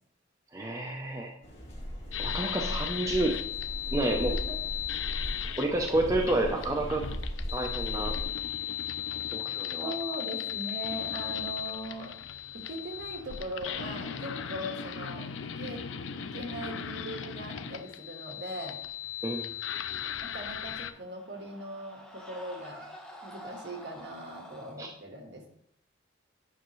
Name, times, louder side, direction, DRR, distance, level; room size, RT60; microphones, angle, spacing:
voice 1, 0.5-1.3 2.2-3.3 3.9-4.3 5.6-7.0 7.5-8.1 9.3-9.9 19.2-19.5 24.8-24.9, right 1 dB, 15° right, 1 dB, 0.6 m, -29 dB
sound 1, 1.4-8.2, equal, 30° left, 2.2 m, -37 dB
sound 2, 2.1-20.9, left 9 dB, 75° left, 0.5 m, -37 dB
voice 2, 4.3-4.6 9.8-12.1 12.7-15.3 15.6-15.8 16.2-18.8 20.2-22.9 23.2-25.5, right 1 dB, 60° right, 2 dB, 1.6 m, -40 dB
Screaming, 20.5-24.8, equal, 5° left, 1.0 m, -48 dB
9.2 x 5.8 x 3.1 m, 0.67 s
head